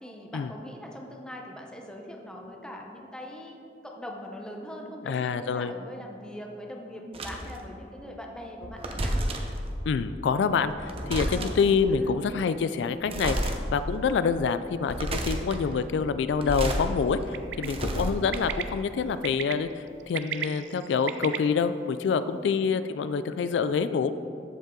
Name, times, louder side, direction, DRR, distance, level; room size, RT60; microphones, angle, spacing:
voice 1, 0.0-9.2 11.3-11.6 12.0-12.2 17.6-18.3 22.1-22.5, left 1 dB, 5° left, 0 dB, 0.8 m, -42 dB
voice 2, 5.1-5.7 9.9-24.1, left 5 dB, 80° left, 12 dB, 0.3 m, -27 dB
sound 1, 7.1-7.6 8.6-9.6 10.6-11.7 13.0-13.6 14.0-14.1 14.7-15.6 16.2-16.8 17.2-18.6, right 1 dB, 35° right, 0.8 m, -30 dB
Bird, 17.3-17.7 18.3-18.6 19.2-19.5 20.0-21.4, right 9 dB, 85° right, 0.5 m, -33 dB
14.0 x 5.4 x 3.8 m, 2.6 s
head